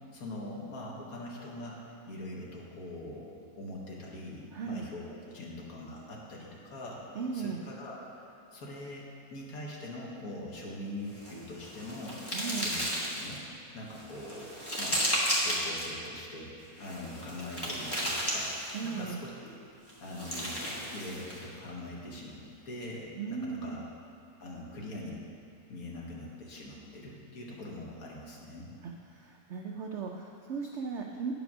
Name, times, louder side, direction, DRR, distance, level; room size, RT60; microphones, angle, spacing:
voice 1, 0.1-1.8 2.1-3.2 3.6-12.2 12.5-13.4 13.7-15.0 15.4-16.5 16.8-18.5 18.8-19.5 20.0-23.8 24.4-25.2 25.7-28.7, left 1 dB, 60° left, -3 dB, 1.7 m, -43 dB
voice 2, 4.5-4.8 7.2-7.6 12.3-12.7 18.7-19.2 23.2-23.8 29.1-31.3, right 5 dB, 70° right, 1 dB, 0.6 m, -36 dB
sound 1, 11.1-13.4 13.9-15.9 16.8-18.9 19.9-21.5, equal, 15° left, 1.4 m, -34 dB
9.1 x 5.2 x 6.0 m, 2.6 s
omnidirectional pair, 1.8 m